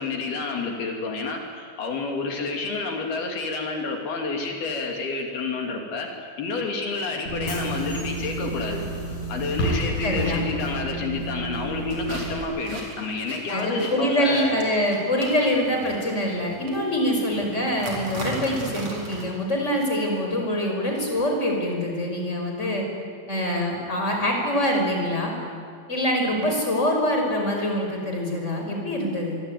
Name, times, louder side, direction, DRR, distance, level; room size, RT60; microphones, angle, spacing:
voice 1, 0.0-8.8 9.3-14.5 26.3-26.5, left 4 dB, 65° left, 2 dB, 4.5 m, -29 dB
Bus / Engine, 7.3-12.4, right 1 dB, 45° left, 8.1 m, -30 dB
voice 2, 10.0-10.4 13.5-22.8 23.3-25.3 25.9-29.4, left 1 dB, 15° left, 1 dB, 5.3 m, -24 dB
sound 1, 11.9-19.3, right 2 dB, 35° right, 5.0 m, -38 dB
26.0 x 24.0 x 9.4 m, 2.1 s
omnidirectional pair, 4.9 m